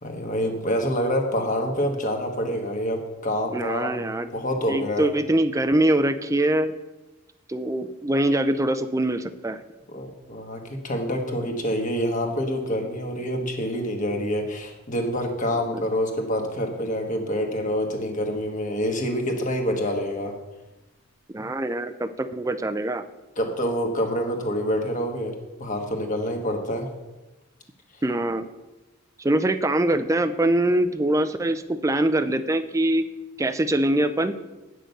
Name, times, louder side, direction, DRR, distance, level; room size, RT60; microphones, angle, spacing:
voice 1, 0.0-5.1 9.9-20.3 23.4-26.9, equal, 35° left, 2 dB, 1.5 m, -27 dB
voice 2, 3.5-4.3 4.7-6.7 7.5-9.6 15.7-15.8 21.3-23.0 28.0-28.5 29.2-33.0 33.4-34.4, right 1 dB, 15° right, 10 dB, 0.4 m, -23 dB
9.3 x 6.4 x 6.7 m, 1.1 s
head